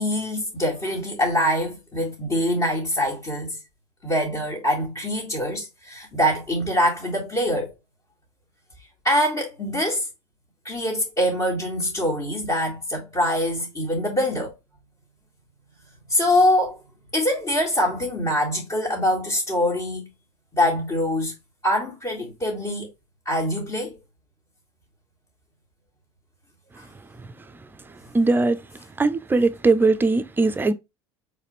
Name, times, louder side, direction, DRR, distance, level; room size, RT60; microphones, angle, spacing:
voice 1, 0.0-3.6 4.0-7.7 9.0-10.1 10.6-14.5 16.1-16.8 17.1-20.1 20.5-21.3 21.6-22.9 23.3-24.0 26.8-26.9, left 1 dB, 30° left, 1.7 m, -24 dB
voice 2, 28.1-28.6 29.0-30.7, right 3 dB, 15° right, 0.5 m, -20 dB
4.1 x 3.2 x 3.1 m
hypercardioid pair, 80°, 14 cm